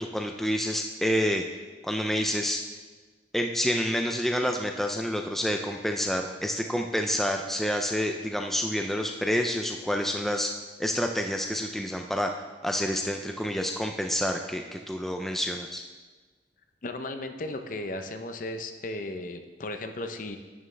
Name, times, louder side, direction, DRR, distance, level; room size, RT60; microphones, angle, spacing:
voice 1, 0.0-1.4 1.8-2.6 3.3-10.5 10.8-12.3 12.6-15.8, equal, ahead, 3 dB, 0.4 m, -28 dB
voice 2, 16.8-20.4, left 2 dB, 45° left, 6 dB, 0.7 m, -35 dB
11.0 x 9.1 x 3.3 m, 1.3 s
head